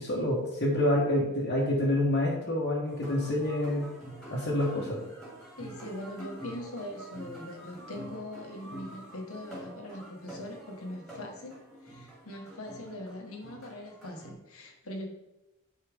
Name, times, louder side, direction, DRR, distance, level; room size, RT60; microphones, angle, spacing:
voice 1, 0.0-3.9 4.3-5.0, left 1 dB, 50° left, -6 dB, 1.3 m, -27 dB
sound 1, 2.9-14.3, right 1 dB, ahead, 2.5 m, -46 dB
voice 2, 5.6-11.6 11.8-15.1, left 1 dB, 75° left, 2 dB, 1.4 m, -41 dB
9.8 x 4.4 x 3.5 m, 0.99 s
head